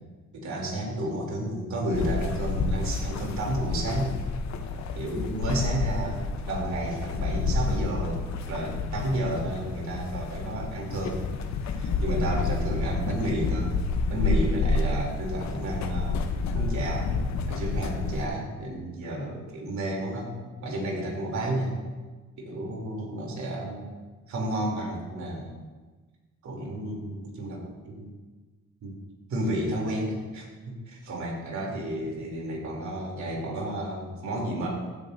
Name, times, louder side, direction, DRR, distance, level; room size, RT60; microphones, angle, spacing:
voice 1, 0.3-4.2 4.9-8.2 8.5-11.3 11.6-13.7 14.1-16.2 16.5-17.1 17.5-21.8 22.4-23.9 24.3-25.5 26.4-28.1 28.8-28.9 29.3-34.7, right 1 dB, 70° right, -2 dB, 3.3 m, -31 dB
sound 1, 1.9-18.3, left 3 dB, 65° left, 0.9 m, -29 dB
15.0 x 9.1 x 2.7 m, 1.3 s
cardioid pair, 90°, 30 cm